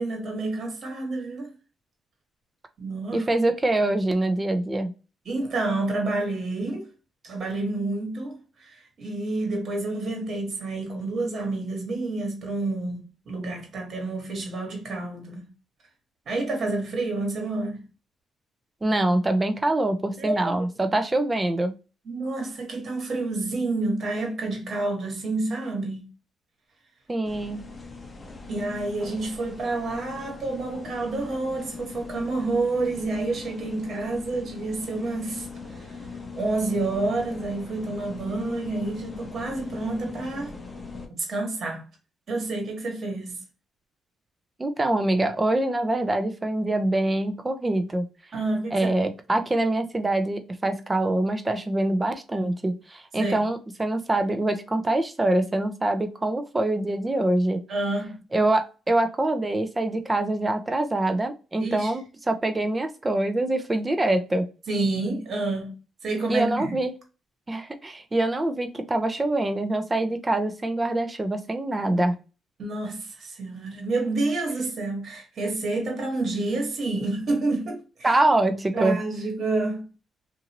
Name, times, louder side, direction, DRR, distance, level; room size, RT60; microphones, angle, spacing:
voice 1, 0.0-1.5 2.8-3.2 5.2-6.9 7.2-15.5 16.3-17.8 20.2-20.6 22.0-26.1 28.5-35.5 35.8-36.0 36.3-40.5 41.1-41.9 42.3-43.4 48.3-48.8 53.2-53.4 57.7-58.2 61.6-61.9 64.7-65.8 66.0-66.8 72.6-78.1 78.7-79.9, right 2 dB, 55° right, 1.3 m, -29 dB
voice 2, 3.1-4.9 18.8-21.7 27.1-27.6 44.6-48.1 48.7-57.6 58.3-64.5 66.3-66.9 67.5-72.2 78.0-79.0, right 2 dB, 20° right, 0.5 m, -24 dB
sound 1, 27.2-41.1, left 4 dB, 30° left, 0.7 m, -40 dB
2.7 x 2.6 x 2.9 m
cardioid pair, 90°, 0 cm